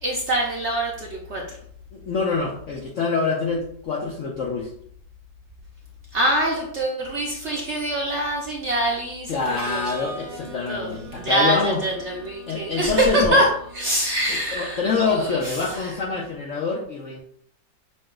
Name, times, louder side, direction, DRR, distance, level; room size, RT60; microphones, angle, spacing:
voice 1, 0.0-1.4 6.1-9.4 9.6-10.4 10.7-10.9 11.2-13.5 13.7-16.0, right 1 dB, 55° right, -2 dB, 0.8 m, -24 dB
voice 2, 1.9-4.7 9.3-11.8 12.5-13.4 14.5-17.2, left 4 dB, 65° left, -2 dB, 0.8 m, -25 dB
Harmonica, 9.4-15.1, right 2 dB, 20° left, 0.5 m, -42 dB
6.2 x 2.2 x 3.7 m, 0.64 s
omnidirectional pair, 2.0 m